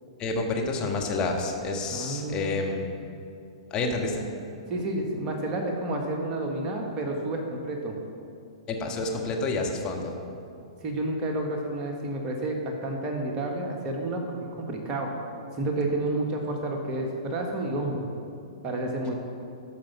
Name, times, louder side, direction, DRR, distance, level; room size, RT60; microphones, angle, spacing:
voice 1, 0.2-2.8 3.7-4.3 8.7-10.1, left 3 dB, 25° left, 1 dB, 1.5 m, -29 dB
voice 2, 1.9-2.5 4.7-7.9 10.8-15.1 15.5-18.1 18.6-19.1, right 2 dB, 30° right, 1 dB, 1.5 m, -30 dB
12.5 x 5.2 x 6.0 m, 2.6 s
figure-of-eight pair, 110°, 3 cm